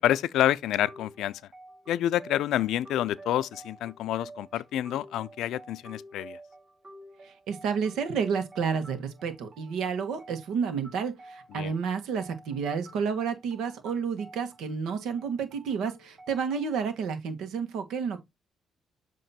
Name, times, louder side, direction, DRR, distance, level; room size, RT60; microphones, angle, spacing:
voice 1, 0.0-1.4 1.9-6.4 11.5-11.7, left 12 dB, 85° left, 0.4 m, -28 dB
sound 1, 0.9-16.8, right 1 dB, 40° right, 4.3 m, -50 dB
voice 2, 7.2-18.2, right 6 dB, 85° right, 1.5 m, -30 dB
7.7 x 3.0 x 4.2 m
cardioid pair, 90°, 0 cm